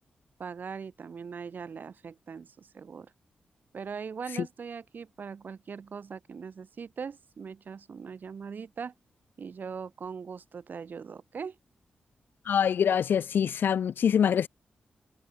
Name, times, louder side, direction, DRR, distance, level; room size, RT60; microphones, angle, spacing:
voice 1, 0.4-3.1 3.7-8.9 9.4-11.6, right 6 dB, 65° right, 3.6 m, -40 dB
voice 2, 12.5-14.5, left 8 dB, 75° left, 0.8 m, -24 dB
cardioid pair, 55°, 3 cm